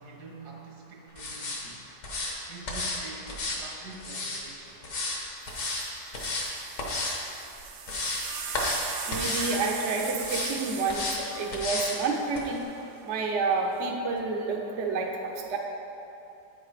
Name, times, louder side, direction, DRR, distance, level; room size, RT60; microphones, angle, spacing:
voice 1, 0.0-1.9 2.5-5.0, right 3 dB, 70° right, -1 dB, 1.7 m, -46 dB
sound 1, 1.2-1.6 2.0-2.3 2.7-3.0 3.3-4.4 4.8-5.2 5.5-5.8 6.1-6.5 6.8-7.2 7.6-8.2 8.5-8.8 9.1-9.5 10.2-10.5 10.9-11.2 11.5-12.0 12.3-12.4, left 2 dB, 55° left, 1.5 m, -32 dB
sound 2, 5.1-5.2 5.4-12.8 13.7-14.2, right 6 dB, 90° right, 1.3 m, -39 dB
voice 2, 9.1-11.1 11.4-12.6 13.0-15.1 15.5-15.6, right 4 dB, 55° right, 0 dB, 0.9 m, -29 dB
8.3 x 6.6 x 4.9 m, 2.8 s
omnidirectional pair, 1.7 m